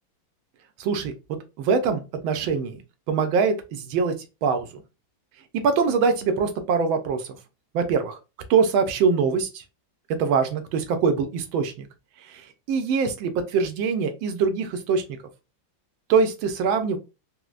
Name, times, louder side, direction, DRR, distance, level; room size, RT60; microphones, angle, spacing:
voice 1, 0.8-1.1 1.6-2.8 3.1-4.8 5.5-7.4 7.7-8.2 8.5-9.6 10.2-11.9 12.2-15.0 16.1-17.0, right 5 dB, 80° right, 1.4 m, -23 dB
4.3 x 2.0 x 2.4 m
omnidirectional pair, 2.2 m